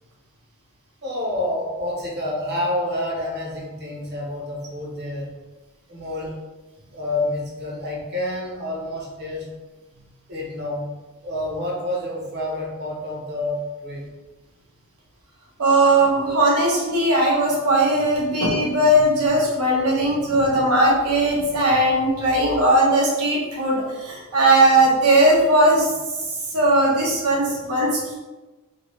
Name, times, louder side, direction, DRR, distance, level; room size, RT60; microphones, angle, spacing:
voice 1, 1.0-5.3 5.9-6.3 6.9-9.5 10.3-11.0 11.2-14.1, left 1 dB, 50° right, -3 dB, 0.9 m, -28 dB
voice 2, 15.6-26.0 26.3-28.2, right 1 dB, 75° right, -3 dB, 1.0 m, -18 dB
2.8 x 2.8 x 3.1 m, 1.2 s
head